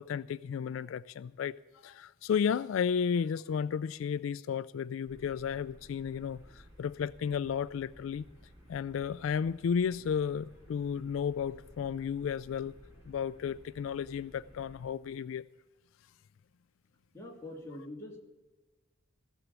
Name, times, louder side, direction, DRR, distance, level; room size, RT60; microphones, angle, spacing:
voice 1, 0.0-8.2 8.7-12.7 13.1-15.5, left 7 dB, 80° left, 0.3 m, -33 dB
sound 1, 5.0-14.9, equal, 20° right, 5.9 m, -57 dB
voice 2, 17.1-18.2, left 1 dB, 15° left, 2.7 m, -44 dB
16.0 x 7.2 x 8.1 m
head